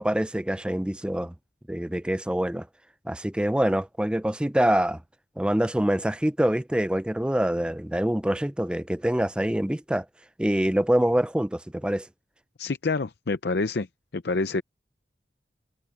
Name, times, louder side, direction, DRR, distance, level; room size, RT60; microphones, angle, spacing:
voice 1, 0.0-1.3 1.7-2.7 3.1-5.0 5.4-10.1 10.4-12.1, right 1 dB, 5° right, 0.4 m, -25 dB
voice 2, 12.6-13.9 14.1-14.6, left 3 dB, 65° left, 0.6 m, -27 dB
head